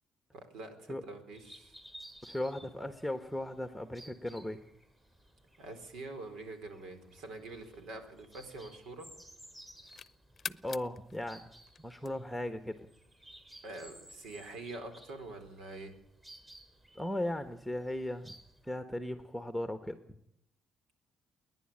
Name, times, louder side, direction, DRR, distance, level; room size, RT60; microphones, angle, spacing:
voice 1, 0.3-1.8 5.6-9.1 13.6-15.9, right 2 dB, 85° right, 7 dB, 4.3 m, -45 dB
sound 1, 1.3-18.7, right 1 dB, 20° right, 5.9 m, -57 dB
voice 2, 2.2-4.6 10.5-11.5 11.8-12.8 16.9-18.4 18.6-20.0, left 1 dB, ahead, 8 dB, 1.4 m, -37 dB
sound 2, 8.7-9.1 9.5-12.5, left 6 dB, 45° left, 0.7 m, -47 dB
29.5 x 10.5 x 8.9 m, 0.76 s
cardioid pair, 90°, 0 cm